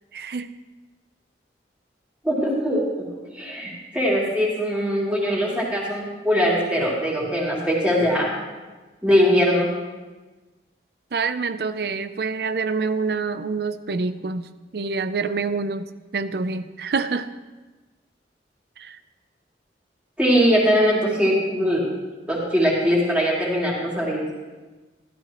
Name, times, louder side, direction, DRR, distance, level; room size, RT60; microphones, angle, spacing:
voice 1, 0.1-0.5 11.1-14.5 14.7-15.8 16.1-17.3 18.8-19.0, right 4 dB, 65° right, 12 dB, 0.5 m, -26 dB
voice 2, 2.2-3.1 3.3-8.4 9.0-9.7 20.2-21.8 22.3-24.2, equal, 5° right, -5 dB, 2.9 m, -21 dB
15.0 x 13.0 x 3.0 m, 1.2 s
head